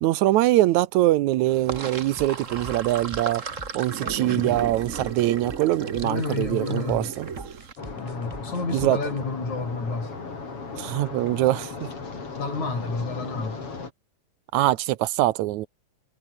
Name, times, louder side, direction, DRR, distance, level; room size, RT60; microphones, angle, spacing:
voice 1, 0.0-3.4 3.7-7.3 8.7-9.0 10.8-11.9 14.5-15.7, right 15 dB, 80° right, 2.1 m, -23 dB
Sink (filling or washing), 1.5-7.7, right 5 dB, 35° right, 1.5 m, -34 dB
sound 1, 1.8-9.2, right 1 dB, 10° right, 7.0 m, -44 dB
voice 2, 6.0-7.1 8.0-10.2 12.4-13.6, left 3 dB, 70° left, 8.5 m, -30 dB
sound 2, 7.8-13.9, left 4 dB, 50° left, 5.3 m, -37 dB
omnidirectional pair, 3.4 m